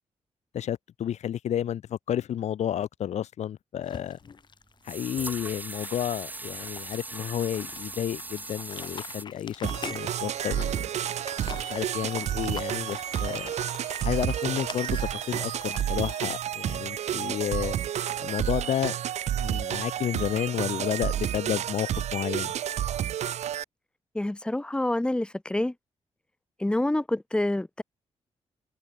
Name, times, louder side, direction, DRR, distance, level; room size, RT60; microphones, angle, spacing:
voice 1, 0.5-4.2 4.8-10.9 11.5-13.5 14.0-17.8 18.2-19.0 19.4-22.5, left 10 dB, 90° left, 4.6 m, -31 dB
sound 1, 3.8-15.8, left 6 dB, 40° left, 6.5 m, -44 dB
sound 2, 4.0-4.1 4.9-9.3, right 2 dB, 15° right, 4.8 m, -39 dB
sound 3, 9.6-23.6, right 10 dB, 85° right, 1.2 m, -30 dB
voice 2, 24.1-25.7 26.6-27.8, left 1 dB, 10° left, 3.0 m, -27 dB
wide cardioid pair, 145°, 11 cm